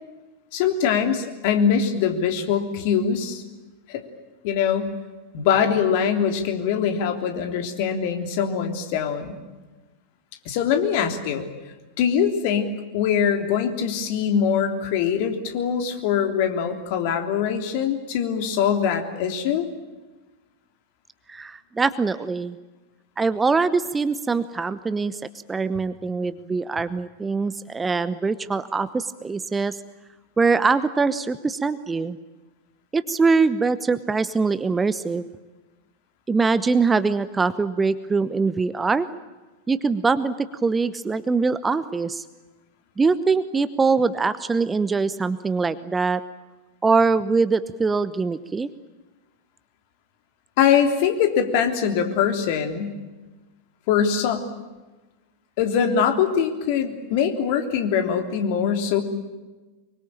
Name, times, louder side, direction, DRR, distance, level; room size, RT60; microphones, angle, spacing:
voice 1, 0.5-3.4 3.9-4.0 4.4-4.9 5.3-9.4 10.4-11.5 12.0-19.7 50.6-53.0 53.9-54.5 55.6-59.0, left 7 dB, 50° left, 5 dB, 3.3 m, -23 dB
voice 2, 21.3-22.6 23.2-25.2 25.5-29.8 30.4-32.2 32.9-35.2 36.3-39.1 39.7-42.2 43.0-46.2 46.8-48.7, right 4 dB, 15° right, 14 dB, 0.9 m, -23 dB
25.0 x 23.5 x 8.9 m, 1.2 s
figure-of-eight pair, 90°, 0 cm